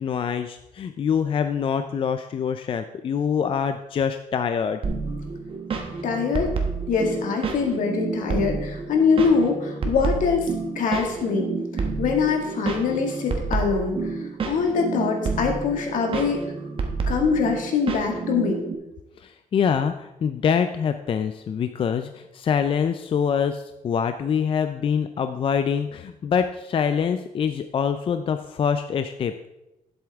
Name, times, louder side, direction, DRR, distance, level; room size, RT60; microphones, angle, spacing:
voice 1, 0.0-4.8 19.2-29.5, left 7 dB, 40° left, 9 dB, 0.4 m, -25 dB
sound 1, 4.8-18.7, right 4 dB, 40° right, 1.2 m, -29 dB
voice 2, 6.0-6.5 6.9-10.5 10.8-14.2 14.5-16.4 17.1-18.6, left 5 dB, 70° left, 1 dB, 2.0 m, -23 dB
11.5 x 7.9 x 3.5 m, 0.94 s
cardioid pair, 145°, 14 cm